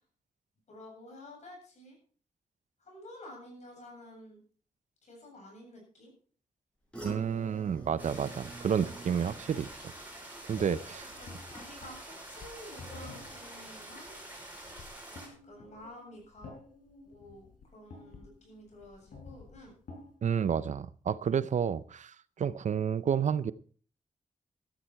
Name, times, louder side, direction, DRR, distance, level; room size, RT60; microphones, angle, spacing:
voice 1, 0.7-2.0 2.8-4.4 5.0-6.1 11.2-14.2 15.5-16.5 17.0-19.7, left 1 dB, 55° left, 0 dB, 8.0 m, -50 dB
sound 1, 6.9-12.1 12.5-12.9 13.3-13.4, right 2 dB, 10° left, 6.5 m, -48 dB
voice 2, 7.0-9.9 10.5-11.1 20.2-23.5, right 7 dB, 60° right, 17 dB, 0.6 m, -30 dB
sound 2, 8.0-15.3, right 1 dB, 15° right, 5.6 m, -47 dB
sound 3, 10.5-20.2, left 3 dB, 85° left, 4.3 m, -51 dB
13.5 x 13.5 x 4.6 m, 0.43 s
wide cardioid pair, 160°, 14 cm